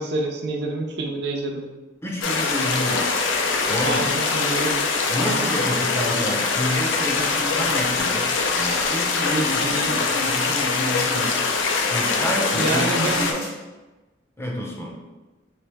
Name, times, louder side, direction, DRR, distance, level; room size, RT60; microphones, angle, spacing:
voice 1, 0.0-1.6 3.8-4.8 5.2-5.5 9.3-10.0 12.5-13.3, right 2 dB, 60° right, 2 dB, 0.5 m, -27 dB
voice 2, 2.0-3.0 3.7-4.1 5.1-8.3 8.5-11.4 11.9-13.5 14.4-14.9, equal, 15° left, -2 dB, 0.5 m, -29 dB
sound 1, 2.2-13.3, left 4 dB, 85° left, 0.5 m, -23 dB
sound 2, 2.7-3.3 4.2-4.7 5.1-5.5 6.0-6.4 6.8-7.3 7.6-8.5 8.7-8.9 9.4-9.7 10.1-10.6 10.9-11.4 11.7-12.8 13.1-13.5, left 2 dB, 50° left, 1.0 m, -39 dB
3.2 x 3.2 x 3.3 m, 1.1 s
head